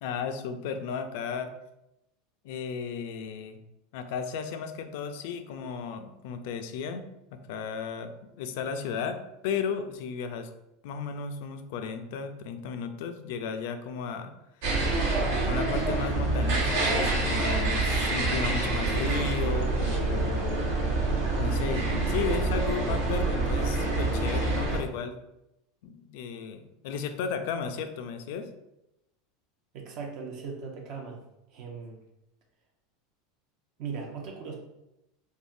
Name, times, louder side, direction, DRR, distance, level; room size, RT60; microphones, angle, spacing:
voice 1, 0.0-1.5 2.4-3.6 3.9-7.0 7.3-10.5 10.8-14.3 15.5-20.7 21.4-25.2 25.8-28.5, left 6 dB, 70° left, 8 dB, 0.3 m, -34 dB
sound 1, 14.6-24.8, right 2 dB, 75° right, 0.9 m, -26 dB
voice 2, 29.7-31.2 31.5-32.0 33.8-34.5, right 5 dB, 50° right, 0 dB, 0.6 m, -38 dB
3.4 x 2.1 x 2.5 m, 0.87 s
supercardioid pair, 135°, 0 cm